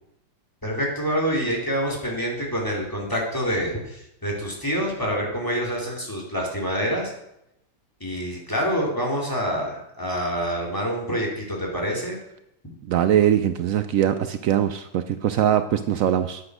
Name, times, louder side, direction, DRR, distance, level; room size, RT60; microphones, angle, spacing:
voice 1, 0.6-7.1 8.0-12.2, equal, 10° left, -1 dB, 2.9 m, -26 dB
voice 2, 12.9-16.4, right 10 dB, 85° right, 10 dB, 0.7 m, -21 dB
9.8 x 8.8 x 6.2 m, 0.83 s
omnidirectional pair, 2.0 m